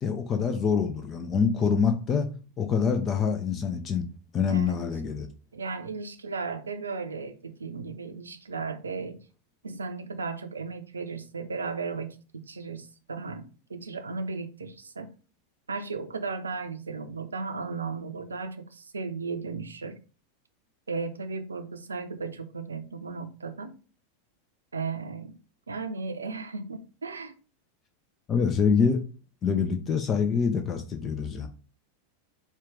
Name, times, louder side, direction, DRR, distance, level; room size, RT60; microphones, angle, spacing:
voice 1, 0.0-2.3 2.6-4.1 4.3-5.3 28.3-29.0 29.4-31.5, left 6 dB, 25° left, 0.5 m, -25 dB
voice 2, 4.5-4.8 5.5-9.2 9.6-12.1 12.3-15.1 15.7-20.0 20.9-23.7 24.7-25.3 25.7-27.3, right 4 dB, 75° right, 0.6 m, -35 dB
4.5 x 2.4 x 3.6 m
figure-of-eight pair, 90°, 0 cm